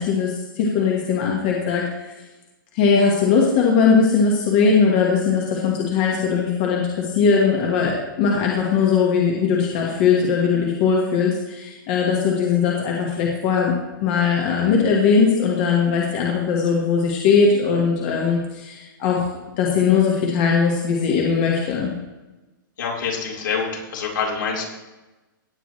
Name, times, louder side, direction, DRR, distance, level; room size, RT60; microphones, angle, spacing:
voice 1, 0.0-2.1 2.7-19.2 19.6-21.9, left 5 dB, 25° left, -2 dB, 1.5 m, -20 dB
voice 2, 22.8-24.6, left 5 dB, 65° left, -2 dB, 4.3 m, -26 dB
17.0 x 9.2 x 3.2 m, 1.1 s
hypercardioid pair, 180°, 11 cm